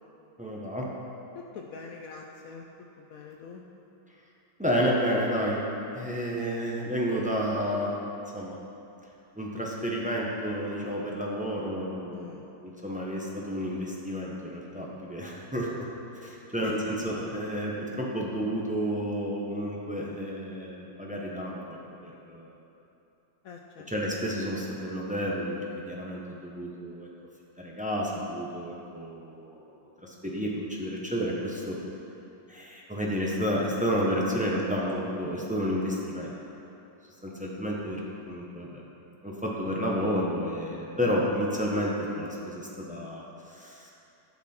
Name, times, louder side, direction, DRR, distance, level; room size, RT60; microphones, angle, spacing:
voice 1, 0.4-0.9 4.6-5.6 5.9-7.9 8.3-8.6 9.4-12.2 12.6-15.9 16.2-21.6 22.0-22.5 23.9-27.1 27.6-29.6 30.0-31.8 32.5-36.4 37.2-38.0 38.3-38.8 39.2-43.9, equal, 10° right, -3 dB, 0.5 m, -31 dB
voice 2, 1.3-2.7 3.0-3.6 12.1-12.4 16.6-16.9 23.4-23.9, left 5 dB, 70° left, 1 dB, 0.9 m, -43 dB
11.5 x 5.8 x 4.3 m, 2.9 s
omnidirectional pair, 1.9 m